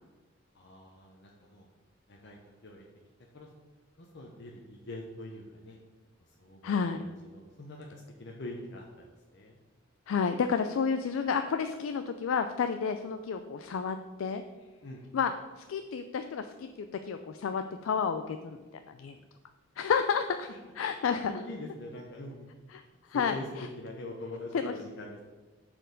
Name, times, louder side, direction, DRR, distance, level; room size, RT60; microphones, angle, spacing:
voice 1, 0.5-1.7 2.1-2.8 3.3-3.5 4.0-5.8 6.3-9.6 14.8-15.0 20.5-20.6 21.1-22.5 23.1-23.5 23.8-25.2, left 1 dB, 60° left, 0 dB, 0.7 m, -44 dB
voice 2, 6.6-7.0 10.1-14.4 15.1-19.2 19.8-20.5 20.8-21.3 22.7-22.8 23.1-23.7 24.5-24.7, left 6 dB, 90° left, 8 dB, 0.4 m, -31 dB
6.2 x 4.4 x 5.1 m, 1.3 s
head